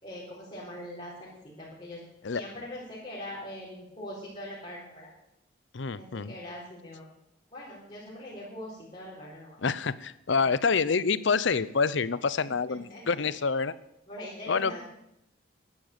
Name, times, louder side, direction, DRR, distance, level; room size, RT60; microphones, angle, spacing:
voice 1, 0.0-2.0 2.3-5.1 5.9-7.1 7.5-9.6 10.3-10.6 12.4-13.2 14.0-14.8, left 1 dB, 30° left, -8 dB, 4.6 m, -42 dB
voice 2, 5.7-6.3 9.6-13.7 14.5-14.7, left 5 dB, 65° left, 18 dB, 0.6 m, -27 dB
11.5 x 11.0 x 8.1 m, 0.85 s
head